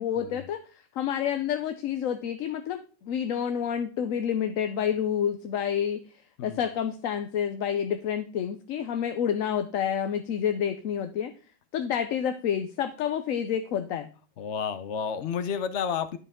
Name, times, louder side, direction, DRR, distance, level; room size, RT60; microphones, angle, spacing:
voice 1, 0.0-6.0 6.4-11.3 11.7-14.1, left 8 dB, 85° left, 8 dB, 1.0 m, -29 dB
voice 2, 14.4-16.2, left 7 dB, 65° left, 12 dB, 0.9 m, -31 dB
11.0 x 5.4 x 3.6 m, 0.39 s
omnidirectional pair, 1.4 m